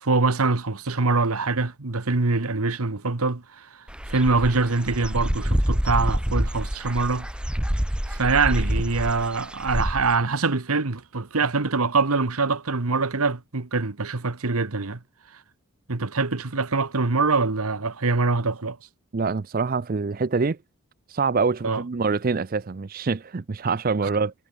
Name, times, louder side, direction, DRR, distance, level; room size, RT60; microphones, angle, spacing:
voice 1, 0.0-3.7 4.1-7.3 8.1-15.0 15.9-18.8 21.6-21.8, right 3 dB, 85° right, 1.4 m, -24 dB
Dog / Bird, 3.9-10.2, equal, 5° right, 0.8 m, -27 dB
voice 2, 19.1-20.6 21.1-24.3, right 4 dB, 40° right, 0.5 m, -25 dB
head